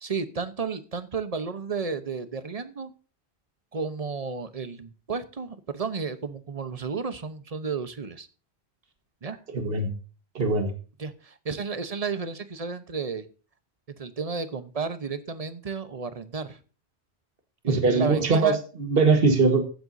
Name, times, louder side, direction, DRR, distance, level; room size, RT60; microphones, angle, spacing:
voice 1, 0.0-2.9 3.7-8.3 9.2-9.4 11.0-13.3 14.0-16.6 17.6-18.6, right 5 dB, 35° right, 11 dB, 1.0 m, -32 dB
voice 2, 9.5-9.9 10.4-10.7 17.7-19.6, right 3 dB, 65° right, 6 dB, 1.8 m, -21 dB
15.5 x 7.8 x 2.7 m, 0.36 s
omnidirectional pair, 1.1 m